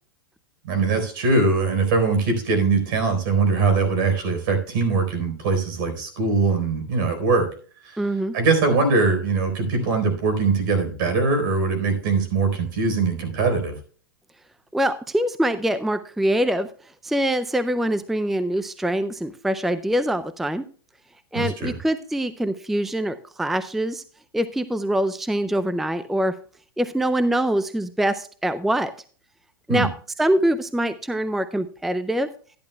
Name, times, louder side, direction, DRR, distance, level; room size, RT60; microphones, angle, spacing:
voice 1, 0.6-7.5 7.8-8.0 8.3-13.7 21.3-21.7 29.7-29.9, right 4 dB, 65° right, 6 dB, 4.1 m, -22 dB
voice 2, 8.0-8.3 14.7-16.7 17.0-20.6 21.3-24.0 24.3-26.3 26.8-28.9 29.7-29.9 30.2-32.3, right 1 dB, ahead, 12 dB, 0.4 m, -24 dB
13.0 x 10.5 x 2.2 m, 0.42 s
hypercardioid pair, 125°, 12 cm